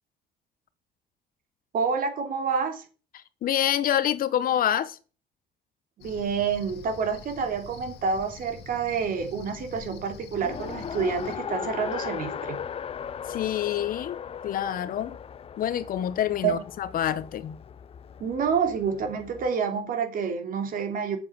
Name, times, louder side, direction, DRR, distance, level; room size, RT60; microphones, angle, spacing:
voice 1, 1.7-2.8 6.0-12.6 16.4-16.6 18.2-21.2, right 6 dB, 55° right, 3.1 m, -28 dB
voice 2, 3.1-5.0 13.3-15.2 15.6-17.6, left 10 dB, 55° left, 1.0 m, -27 dB
Cricket, 6.0-11.4, left 6 dB, 75° left, 2.0 m, -45 dB
Race car auto racing, 10.4-19.5, left 7 dB, 35° left, 0.6 m, -37 dB
8.3 x 7.3 x 7.0 m
cardioid pair, 110°, 17 cm